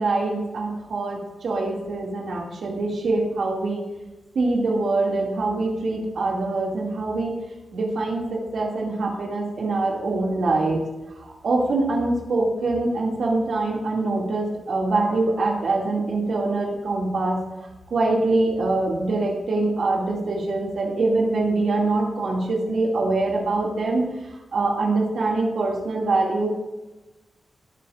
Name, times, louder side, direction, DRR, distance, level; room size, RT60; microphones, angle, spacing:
voice 1, 0.0-3.8 4.3-7.3 7.7-10.8 11.1-17.4 17.9-24.0 24.3-26.5, right 2 dB, 70° right, -2 dB, 2.3 m, -24 dB
18.5 x 9.2 x 2.5 m, 1.1 s
wide cardioid pair, 140°, 0 cm